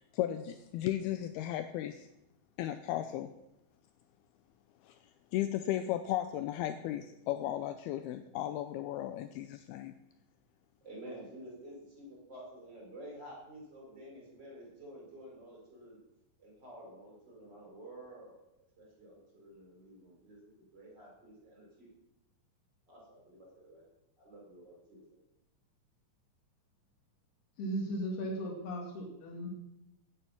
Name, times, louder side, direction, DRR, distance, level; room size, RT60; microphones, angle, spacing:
voice 1, 0.1-2.1 2.6-3.3 4.8-5.0 5.3-9.9, left 12 dB, 85° left, 10 dB, 2.3 m, -35 dB
voice 2, 10.8-16.0 16.4-18.4 18.8-21.9 22.9-23.9 24.2-25.2, right 1 dB, 25° right, -3 dB, 6.2 m, -51 dB
voice 3, 27.6-29.5, right 1 dB, 65° left, 1 dB, 4.2 m, -37 dB
16.0 x 9.8 x 6.0 m, 0.87 s
omnidirectional pair, 5.1 m